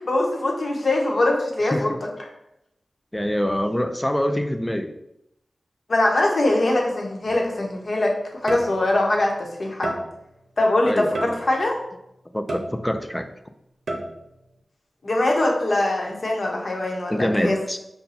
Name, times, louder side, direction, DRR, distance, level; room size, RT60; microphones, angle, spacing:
voice 1, 0.0-1.9 2.2-2.3 5.9-8.1 8.4-9.9 10.6-11.7 15.0-17.6, left 2 dB, 55° left, 0 dB, 0.9 m, -22 dB
voice 2, 3.1-4.9 10.8-11.2 12.3-13.3 17.1-17.8, equal, 10° left, 8 dB, 0.4 m, -25 dB
sound 1, 7.3-7.5 8.5-9.1 9.8-10.4 11.1-11.8 12.5-13.2 13.9-14.4, right 1 dB, 80° right, 0.6 m, -31 dB
5.5 x 2.2 x 4.0 m, 0.81 s
wide cardioid pair, 90°, 0 cm